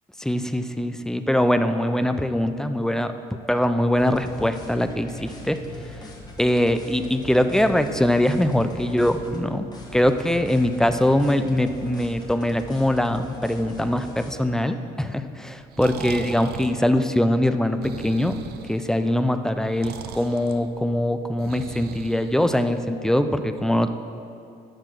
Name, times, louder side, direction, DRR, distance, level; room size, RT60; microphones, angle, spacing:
voice 1, 0.2-3.1 3.5-5.6 6.4-9.7 9.9-18.4 18.7-23.9, left 1 dB, 5° left, 9 dB, 0.4 m, -22 dB
sound 1, 4.0-9.4 9.7-14.3, left 1 dB, 25° left, 1.5 m, -40 dB
Breathing, 15.6-22.9, right 8 dB, 70° right, 0.7 m, -39 dB
12.0 x 4.8 x 6.0 m, 2.6 s
cardioid pair, 110°, 17 cm